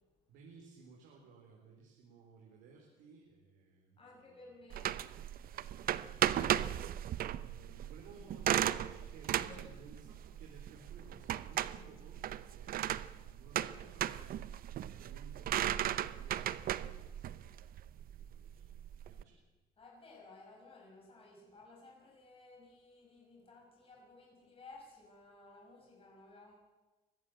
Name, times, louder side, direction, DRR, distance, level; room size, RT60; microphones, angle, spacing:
voice 1, 0.3-4.6 5.6-19.4, right 4 dB, 90° right, 0 dB, 4.0 m, -58 dB
voice 2, 4.0-5.0 8.7-8.8 9.5-9.6 19.8-26.5, left 3 dB, 35° left, -2 dB, 5.6 m, -57 dB
sound 1, 4.7-19.2, right 11 dB, 60° right, 0.8 m, -36 dB
23.5 x 15.0 x 7.8 m, 1.2 s
cardioid pair, 110°, 17 cm